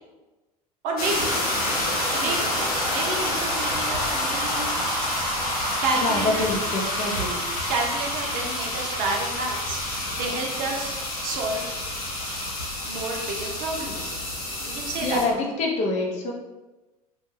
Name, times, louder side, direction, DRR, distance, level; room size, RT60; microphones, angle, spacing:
voice 1, 0.8-1.4 2.1-4.8 5.8-6.5 7.1-7.2 7.7-9.8 10.2-11.7 12.8-14.2 14.6-15.4, right 3 dB, 45° right, 0 dB, 0.6 m, -30 dB
sound 1, 1.0-15.2, left 1 dB, 70° left, 0.8 m, -28 dB
voice 2, 6.0-7.3 15.0-16.3, left 2 dB, 40° left, -1 dB, 0.6 m, -26 dB
2.4 x 2.2 x 3.1 m, 1.1 s
figure-of-eight pair, 75°, 19 cm